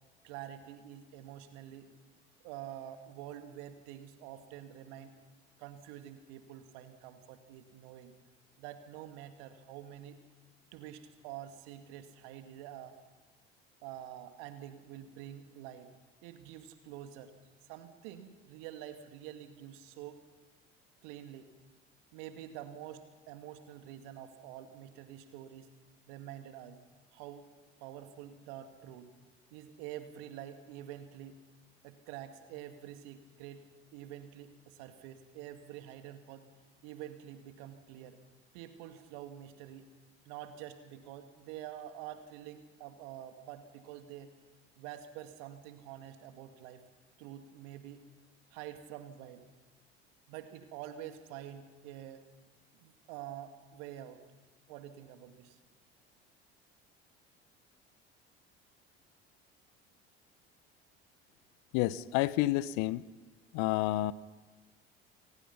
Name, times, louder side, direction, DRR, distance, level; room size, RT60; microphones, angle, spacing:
voice 1, 0.2-1.9 2.4-5.1 5.6-8.1 8.6-10.2 10.7-13.0 13.8-15.9 16.2-17.3 17.6-20.2 21.0-21.5 22.1-25.7 26.1-26.8 27.1-27.5 27.8-29.1 29.5-31.4 31.8-33.7 33.9-36.4 36.8-38.2 38.5-39.9 40.2-44.3 44.8-46.8 47.2-48.0 48.5-49.4 50.3-52.2 52.7-54.2 54.7-55.6, right 11 dB, 70° right, 8 dB, 2.2 m, -47 dB
voice 2, 61.7-63.1 63.5-64.1, left 16 dB, 60° left, 19 dB, 0.9 m, -29 dB
28.0 x 18.5 x 5.9 m, 1.3 s
hypercardioid pair, 65°, 32 cm